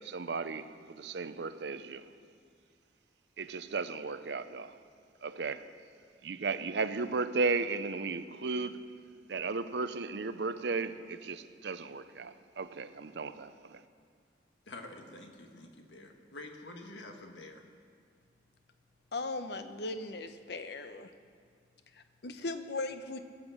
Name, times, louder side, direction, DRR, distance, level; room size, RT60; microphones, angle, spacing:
voice 1, 0.0-2.1 3.4-4.7 5.2-5.6 6.2-8.8 9.3-13.8, right 4 dB, 65° right, 0.6 m, -35 dB
voice 2, 14.6-17.7, left 2 dB, 80° left, 1.6 m, -48 dB
voice 3, 19.1-21.1 21.9-23.2, left 2 dB, 60° left, 0.9 m, -38 dB
20.5 x 8.1 x 7.3 m
head